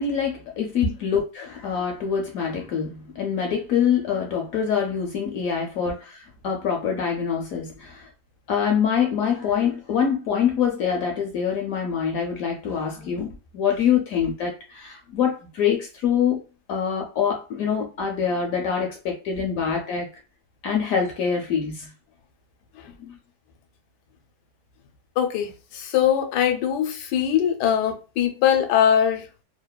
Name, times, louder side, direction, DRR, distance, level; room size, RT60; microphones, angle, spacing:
voice 1, 0.0-8.1 8.5-16.4 16.7-20.1 20.6-21.9 23.0-23.2, left 7 dB, 70° left, 0.9 m, -25 dB
voice 2, 25.2-29.2, left 9 dB, 90° left, 1.2 m, -21 dB
2.9 x 2.1 x 2.2 m
omnidirectional pair, 1.7 m